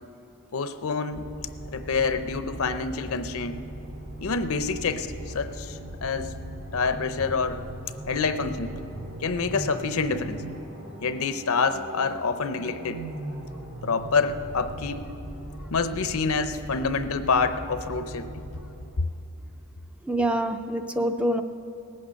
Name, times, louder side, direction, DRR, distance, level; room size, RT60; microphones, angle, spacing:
voice 1, 0.5-1.3 1.7-3.6 4.2-6.3 6.7-7.6 8.1-8.7 9.2-10.4 11.0-13.0 13.8-15.0 15.7-18.4, left 4 dB, 70° left, 10 dB, 0.6 m, -27 dB
sound 1, 1.1-19.2, right 1 dB, 55° right, 3.1 m, -39 dB
voice 2, 20.1-21.4, right 1 dB, 5° right, 7 dB, 0.3 m, -25 dB
18.5 x 8.7 x 6.4 m, 2.7 s
head